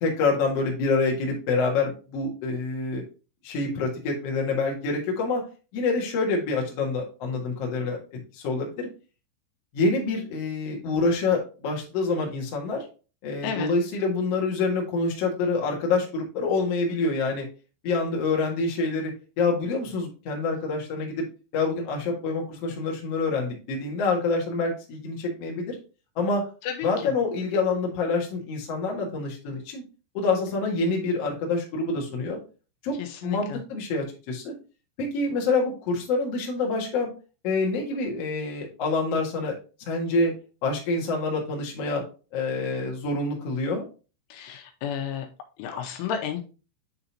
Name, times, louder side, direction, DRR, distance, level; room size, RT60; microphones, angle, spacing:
voice 1, 0.0-3.0 3.4-5.4 5.7-8.9 9.7-12.8 13.2-17.4 17.8-21.2 21.5-25.8 26.1-26.4 26.8-29.8 30.1-32.4 32.8-32.9 33.2-34.5 35.0-37.1 37.4-39.5 39.8-40.3 40.6-42.0 42.3-43.8, left 3 dB, 60° left, -1 dB, 1.7 m, -26 dB
voice 2, 26.6-27.1 33.0-33.6 44.3-45.3 45.6-46.4, left 8 dB, 80° left, 4 dB, 3.3 m, -32 dB
9.8 x 3.9 x 2.9 m, 0.34 s
omnidirectional pair, 5.7 m